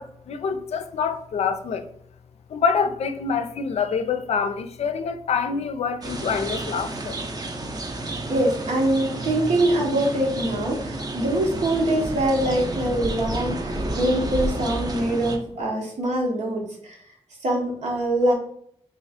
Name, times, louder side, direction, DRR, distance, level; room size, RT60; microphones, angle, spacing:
voice 1, 0.0-1.9 2.5-7.2, left 6 dB, 70° left, 0.4 m, -26 dB
sound 1, 6.0-15.4, right 2 dB, 35° right, 0.6 m, -31 dB
voice 2, 8.3-17.0 17.4-18.3, right 1 dB, 80° right, 1.1 m, -24 dB
3.1 x 2.4 x 4.0 m
cardioid pair, 60°, 11 cm